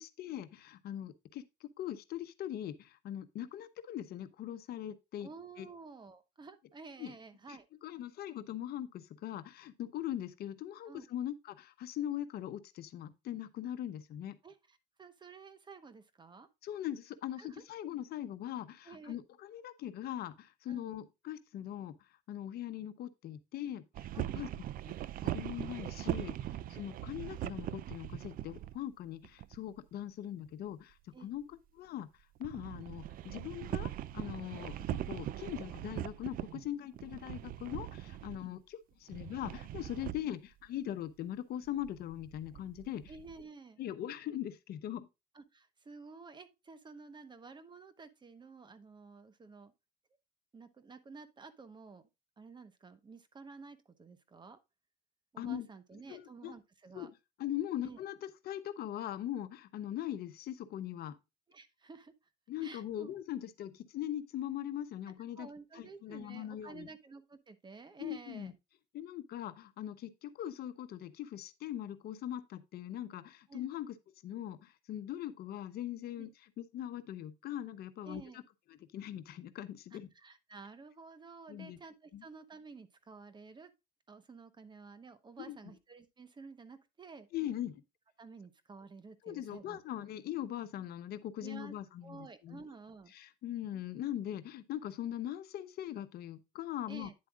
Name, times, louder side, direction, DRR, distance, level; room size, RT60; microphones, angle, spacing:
voice 1, 0.0-1.4 1.8-5.3 5.6-5.7 7.0-7.1 7.5-14.4 16.6-22.0 22.3-24.5 24.9-25.0 25.2-32.1 32.4-43.0 43.8-45.1 55.4-55.7 56.1-56.5 56.9-61.2 62.5-66.9 68.0-68.5 68.9-73.9 74.2-76.3 76.6-78.2 78.9-80.1 81.5-81.8 82.1-82.2 85.4-85.6 87.3-87.8 89.2-92.6 93.1-97.1, left 11 dB, 70° left, 0.9 m, -41 dB
voice 2, 5.2-7.7 10.9-11.0 14.4-16.5 17.4-17.6 18.8-19.2 20.7-20.9 24.1-24.5 26.5-26.6 31.1-31.3 38.4-38.5 43.1-43.8 45.3-49.7 50.5-52.1 52.4-54.6 55.3-57.1 57.8-58.0 61.5-62.1 62.6-63.1 65.4-68.5 73.5-73.7 76.2-76.3 78.0-78.4 79.9-83.7 84.1-87.3 88.2-89.8 91.4-91.7 92.0-93.1 96.9-97.1, right 4 dB, 25° right, 1.1 m, -52 dB
sound 1, 23.9-28.8 29.2-29.8 32.4-36.7 36.9-38.5 39.1-40.3 41.7-43.4, right 13 dB, 60° right, 0.4 m, -41 dB
9.6 x 7.7 x 2.4 m
cardioid pair, 110°, 17 cm